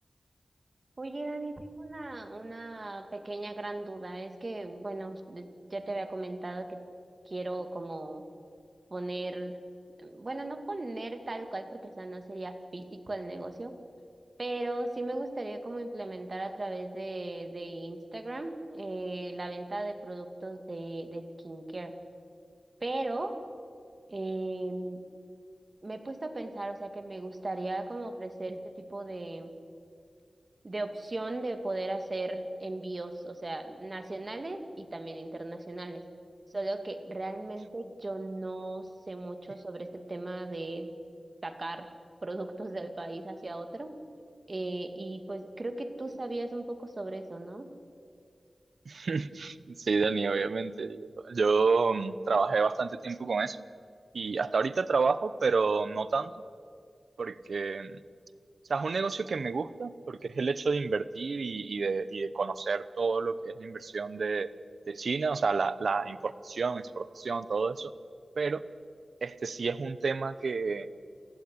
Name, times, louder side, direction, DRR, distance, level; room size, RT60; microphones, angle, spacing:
voice 1, 1.0-6.8 7.3-8.3 8.9-9.6 10.0-13.8 14.4-22.0 22.8-23.4 24.1-25.0 25.8-29.5 30.6-36.0 36.5-40.9 41.4-41.9 42.2-43.9 44.5-47.7, right 2 dB, 40° right, 7 dB, 2.3 m, -37 dB
voice 2, 48.9-53.6 54.1-56.3 57.2-58.0 58.7-64.5 64.9-67.9 68.4-68.7 69.2-70.9, right 4 dB, 75° right, 15 dB, 0.9 m, -29 dB
29.0 x 15.5 x 9.8 m, 2.3 s
wide cardioid pair, 100°, 0 cm